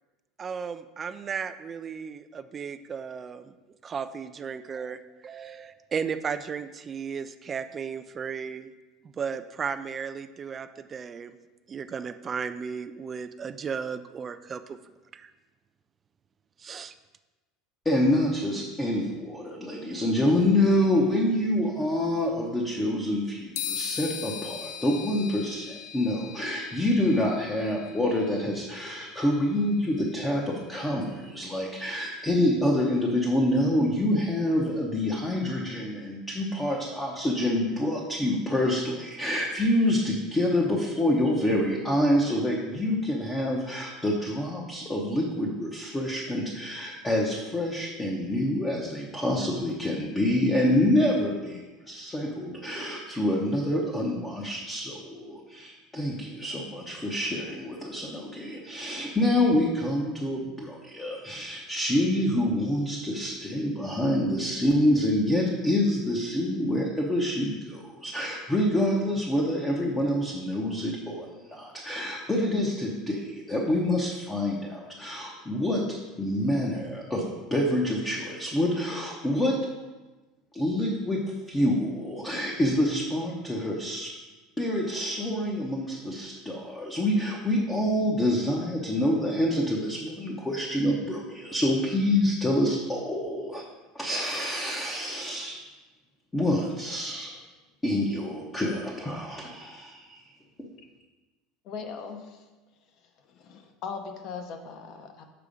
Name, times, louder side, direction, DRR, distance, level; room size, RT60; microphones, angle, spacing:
voice 1, 0.4-3.6 3.8-8.7 9.0-11.4 11.7-15.3 16.6-16.9, right 6 dB, 20° right, 10 dB, 0.3 m, -35 dB
voice 2, 17.8-75.8 76.2-77.2 77.5-79.6 80.5-81.2 81.5-84.1 84.6-93.6 93.9-95.6 96.3-97.3 97.8-100.2, left 1 dB, 10° left, -2 dB, 0.8 m, -27 dB
sound 1, 23.6-31.2, left 9 dB, 75° left, 0.4 m, -40 dB
voice 3, 101.6-102.4 103.3-105.3, left 5 dB, 40° left, 6 dB, 0.8 m, -39 dB
6.8 x 4.8 x 5.0 m, 1.2 s
cardioid pair, 160°, 0 cm